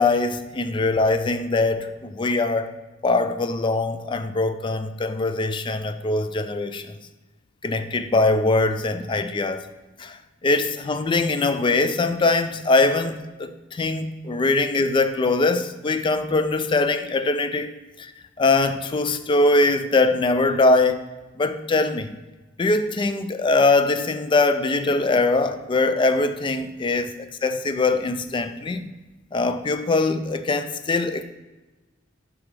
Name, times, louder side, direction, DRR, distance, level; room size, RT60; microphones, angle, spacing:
voice 1, 0.0-2.7 3.0-6.9 7.6-9.6 10.0-17.7 18.0-18.1 18.4-21.0 21.4-22.2 22.6-27.1 27.4-28.9 29.3-31.2, left 3 dB, 25° left, 0.3 m, -22 dB
7.1 x 4.9 x 3.3 m
head